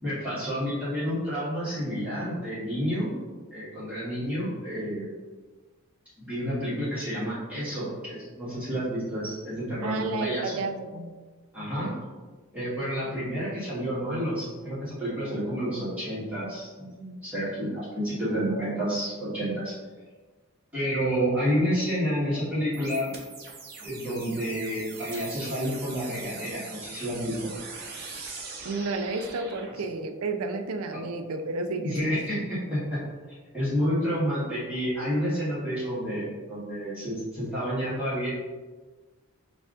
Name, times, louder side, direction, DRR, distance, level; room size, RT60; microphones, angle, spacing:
voice 1, 0.0-3.1 3.5-5.1 6.2-10.6 11.5-11.9 12.5-19.7 20.7-23.1 23.8-27.5 29.7-29.8 31.7-33.0 33.3-38.3, equal, 5° right, -11 dB, 1.3 m, -30 dB
voice 2, 9.8-11.1 28.6-32.2, right 3 dB, 80° right, 6 dB, 0.4 m, -31 dB
sound 1, 22.7-29.7, right 4 dB, 45° right, 0.7 m, -42 dB
6.6 x 2.4 x 2.4 m, 1.3 s
head